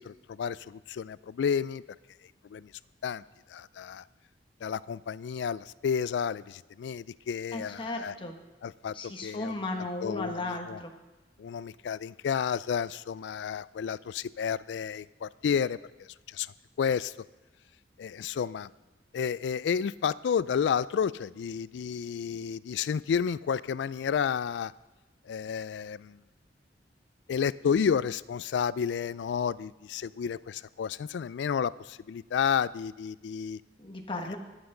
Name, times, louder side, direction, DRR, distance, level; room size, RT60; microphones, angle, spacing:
voice 1, 0.0-1.8 2.5-2.7 3.0-3.2 3.5-4.0 4.6-8.1 8.6-8.9 9.2-9.5 10.0-10.8 11.4-16.5 16.8-17.1 18.0-18.7 19.1-24.7 25.3-26.2 27.3-33.6, left 7 dB, 75° left, 19 dB, 0.3 m, -31 dB
voice 2, 7.5-8.3 8.9-10.9 33.8-34.4, left 2 dB, 30° left, 2 dB, 1.2 m, -35 dB
22.0 x 8.1 x 3.8 m, 1.1 s
head